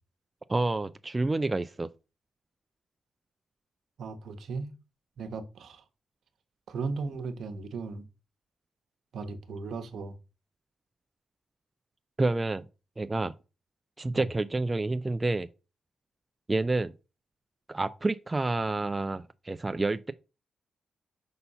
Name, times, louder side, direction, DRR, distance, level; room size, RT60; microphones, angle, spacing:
voice 1, 0.5-1.9 12.2-12.7 13.0-13.3 14.0-15.5 16.5-16.9 17.7-20.1, right 2 dB, 20° right, 0.4 m, -29 dB
voice 2, 4.0-4.7 5.2-5.8 6.7-8.0 9.1-10.2 14.1-14.3, right 4 dB, 75° right, 1.0 m, -36 dB
5.7 x 4.2 x 5.5 m
cardioid pair, 110°, 0 cm